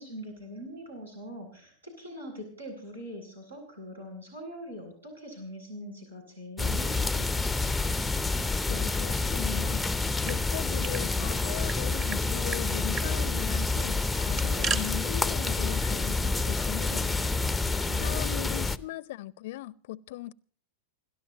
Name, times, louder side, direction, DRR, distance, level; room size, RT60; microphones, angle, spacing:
voice 1, 0.0-7.8 17.7-18.9, equal, 80° right, 8.0 m, -43 dB
sound 1, 6.6-18.8, left 3 dB, 5° left, 0.6 m, -28 dB
voice 2, 8.7-9.8 10.2-17.3 18.0-20.3, left 16 dB, 55° left, 0.6 m, -39 dB
sound 2, 10.0-11.0 11.3-11.4 11.7-12.2 12.5-12.6 12.9-13.1 14.1-14.8, right 6 dB, 35° right, 1.9 m, -35 dB
28.0 x 13.0 x 2.9 m
figure-of-eight pair, 90°, 0 cm